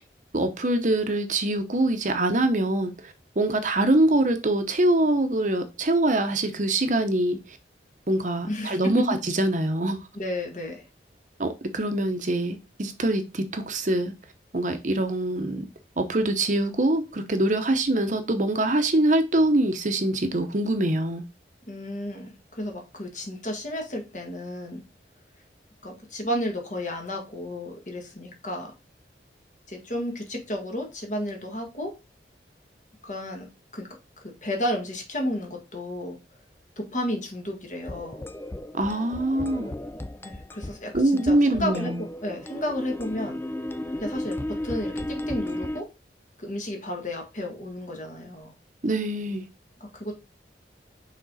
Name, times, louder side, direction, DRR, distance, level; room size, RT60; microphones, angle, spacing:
voice 1, 0.3-7.4 8.1-10.0 11.4-14.1 14.5-15.6 16.0-21.2 38.7-39.7 40.9-42.0 48.8-49.4, right 1 dB, 45° right, 0.8 m, -24 dB
voice 2, 8.5-9.2 10.1-10.9 21.7-24.8 25.8-28.7 29.7-31.9 33.0-33.9 34.2-36.2 36.8-38.3 40.2-43.4 44.0-45.9 46.4-48.5 49.8-50.2, left 1 dB, 45° left, 1.7 m, -32 dB
sound 1, 37.8-45.8, left 1 dB, 15° left, 0.3 m, -35 dB
6.2 x 3.8 x 4.0 m
head